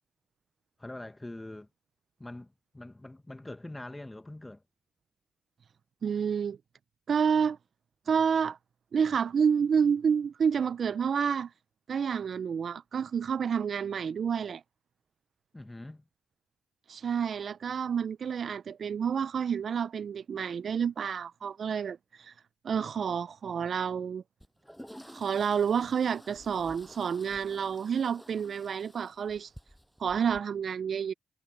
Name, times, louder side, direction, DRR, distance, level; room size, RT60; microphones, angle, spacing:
voice 1, 0.8-1.7 2.2-4.6 15.5-16.0, left 1 dB, 15° left, 1.5 m, -43 dB
voice 2, 6.0-6.6 7.1-7.6 8.1-8.6 8.9-11.5 11.9-14.6 16.9-22.3 22.6-24.2 25.1-29.5 30.0-31.1, right 7 dB, 60° right, 0.6 m, -29 dB
sound 1, 24.4-30.4, equal, ahead, 7.8 m, -52 dB
supercardioid pair, 50°, 0 cm